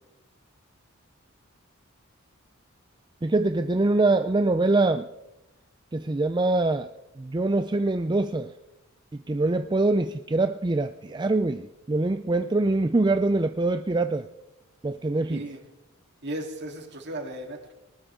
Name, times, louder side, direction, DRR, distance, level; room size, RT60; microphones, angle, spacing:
voice 1, 3.2-5.1 5.9-6.9 7.2-8.5 9.1-14.3 14.8-15.4, right 2 dB, 20° right, 9 dB, 0.5 m, -24 dB
voice 2, 15.3-15.6 16.2-17.7, right 1 dB, 55° right, 2 dB, 3.4 m, -35 dB
19.5 x 19.5 x 3.7 m, 0.93 s
head